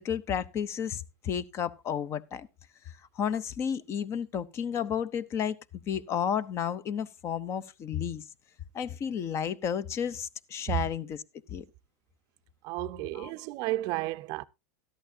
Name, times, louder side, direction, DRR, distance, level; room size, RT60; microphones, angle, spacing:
voice 1, 0.0-2.5 2.8-5.6 5.9-8.2 8.7-11.2 11.5-11.6 13.1-13.3, left 8 dB, 35° left, 0.8 m, -32 dB
voice 2, 12.6-14.4, right 20 dB, 50° right, 0.5 m, -33 dB
13.5 x 11.0 x 2.7 m
supercardioid pair, 125°, 8 cm